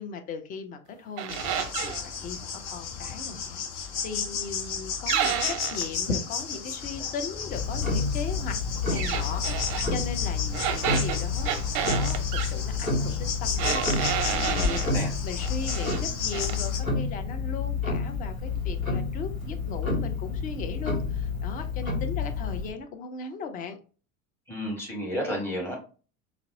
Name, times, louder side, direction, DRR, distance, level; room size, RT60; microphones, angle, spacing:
voice 1, 0.0-23.8, left 5 dB, 20° left, 7 dB, 0.4 m, -38 dB
sound 1, 1.2-2.0 5.1-5.9 9.0-9.9 10.5-12.5 13.6-14.9 15.4-16.0 16.3-16.6, right 9 dB, 45° right, 0.5 m, -30 dB
sound 2, 1.3-16.8, left 6 dB, 60° left, 0.8 m, -34 dB
Tick-tock, 7.5-22.7, left 4 dB, 90° left, 0.8 m, -29 dB
voice 2, 14.2-15.1 24.5-25.7, equal, 5° left, -1 dB, 1.4 m, -32 dB
3.8 x 2.0 x 2.6 m, 0.37 s
figure-of-eight pair, 70°, 40 cm